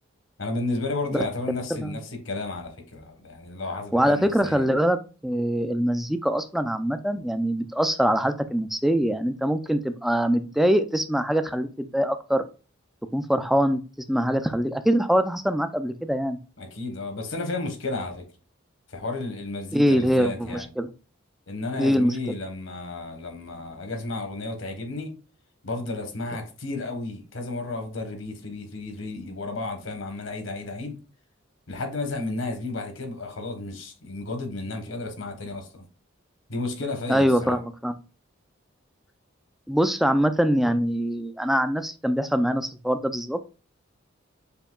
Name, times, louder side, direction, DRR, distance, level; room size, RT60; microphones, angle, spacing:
voice 1, 0.4-4.6 16.6-18.2 18.9-20.7 21.5-25.2 25.6-31.0 31.7-35.8 36.5-37.6, left 2 dB, 80° left, 1.1 m, -32 dB
voice 2, 3.9-5.0 5.2-12.4 13.1-13.8 14.1-16.4 19.7-20.9 21.8-22.1 37.1-37.9 39.7-43.5, equal, ahead, 0.3 m, -23 dB
6.9 x 2.8 x 2.2 m
head